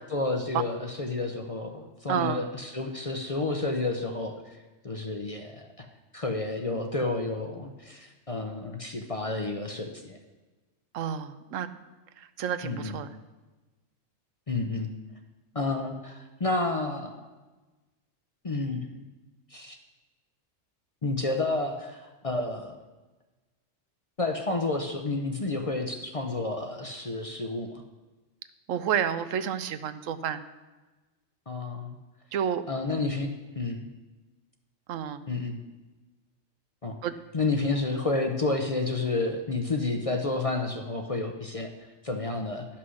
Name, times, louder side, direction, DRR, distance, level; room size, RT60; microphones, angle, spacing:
voice 1, 0.1-4.6 4.8-5.9 6.1-10.2 12.6-13.0 14.5-14.9 15.5-17.1 18.4-19.0 19.5-19.8 21.0-22.8 24.2-27.8 31.5-32.0 32.7-33.3 33.6-33.9 35.3-35.6 36.8-37.0 37.3-41.7 42.0-42.7, left 3 dB, 35° left, 4 dB, 0.6 m, -30 dB
voice 2, 2.1-2.4 10.9-11.7 12.4-13.1 28.7-30.4 32.3-32.6 34.9-35.2 37.0-37.1, right 8 dB, 80° right, 12 dB, 1.0 m, -30 dB
11.0 x 5.9 x 6.3 m, 1.2 s
omnidirectional pair, 1.3 m